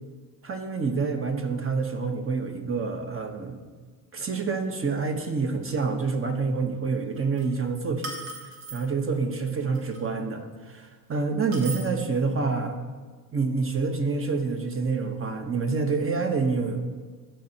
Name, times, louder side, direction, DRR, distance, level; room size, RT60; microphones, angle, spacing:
voice 1, 0.4-3.6 4.1-8.1 8.7-12.8 13.3-16.8, right 4 dB, 30° right, 5 dB, 1.0 m, -27 dB
sound 1, 7.2-7.4 8.0-8.8 9.7-10.0 11.5-11.9, right 3 dB, 70° right, 1.5 m, -37 dB
12.5 x 4.4 x 2.9 m, 1.4 s
hypercardioid pair, 65°, 46 cm